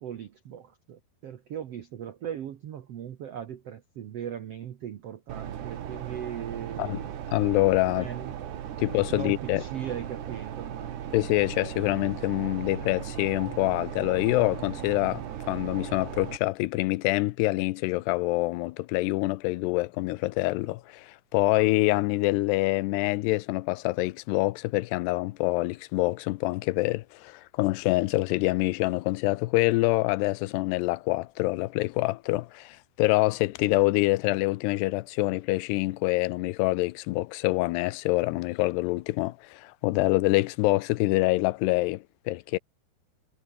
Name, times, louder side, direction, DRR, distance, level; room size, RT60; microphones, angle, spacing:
voice 1, 0.0-7.1 8.0-8.4 9.1-10.9, right 9 dB, 75° right, 1.4 m, -38 dB
sound 1, 5.3-16.4, right 10 dB, 90° right, 4.5 m, -37 dB
voice 2, 7.3-8.1 8.8-9.6 11.1-42.6, left 20 dB, 90° left, 2.8 m, -26 dB
omnidirectional pair, 4.7 m